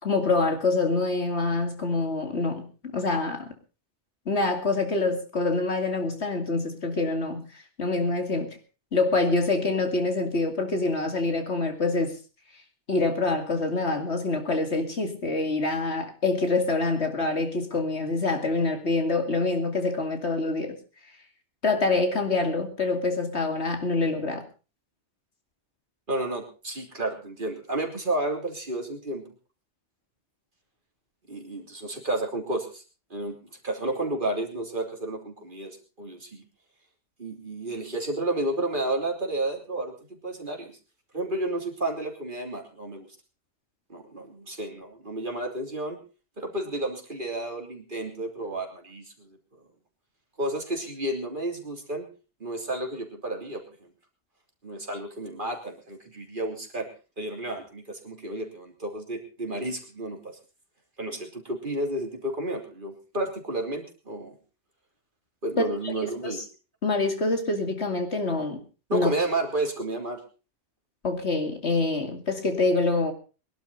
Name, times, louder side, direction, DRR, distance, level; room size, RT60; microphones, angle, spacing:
voice 1, 0.0-2.7 2.9-3.5 4.3-7.4 7.8-8.6 8.9-12.1 12.9-20.8 21.6-24.4 65.8-66.4 66.8-68.6 68.9-69.1 71.0-73.1, left 3 dB, 75° left, 5 dB, 2.7 m, -26 dB
voice 2, 26.1-29.2 31.3-32.8 33.1-33.4 33.6-36.4 37.2-40.7 41.1-43.1 43.9-46.0 46.4-49.4 50.4-52.1 52.4-53.6 54.6-56.9 57.2-60.4 61.0-64.4 65.4-66.4 68.9-70.2, right 1 dB, 45° right, 2 dB, 3.3 m, -31 dB
22.0 x 12.0 x 4.0 m, 0.33 s
omnidirectional pair, 1.1 m